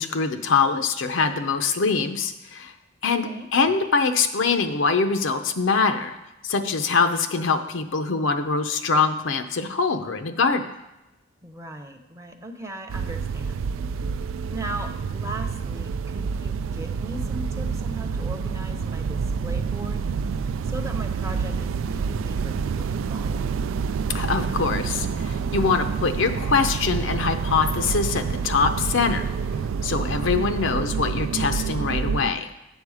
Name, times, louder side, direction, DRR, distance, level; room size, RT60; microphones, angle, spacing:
voice 1, 0.0-2.7 3.0-6.2 6.4-10.6 24.1-29.3 29.8-32.5, left 4 dB, 70° left, 8 dB, 0.6 m, -23 dB
voice 2, 3.0-3.5 11.4-13.6 14.5-20.0 20.6-23.6 30.2-30.6, right 1 dB, 15° right, 5 dB, 0.7 m, -38 dB
sound 1, 12.9-32.3, right 5 dB, 75° right, 0.3 m, -28 dB
8.1 x 7.0 x 4.8 m, 0.95 s
head